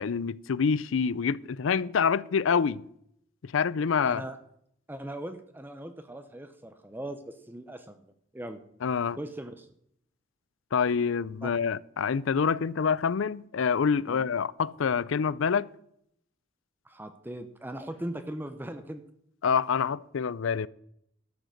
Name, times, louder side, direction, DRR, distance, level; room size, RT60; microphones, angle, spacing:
voice 1, 0.0-2.8 3.4-4.2 8.8-9.2 10.7-15.7 19.4-20.7, left 6 dB, 70° left, 0.4 m, -26 dB
voice 2, 4.0-4.4 4.9-8.6 9.2-9.7 11.4-11.5 14.1-14.2 16.8-19.0, right 1 dB, 10° right, 0.7 m, -39 dB
13.0 x 7.8 x 6.5 m
head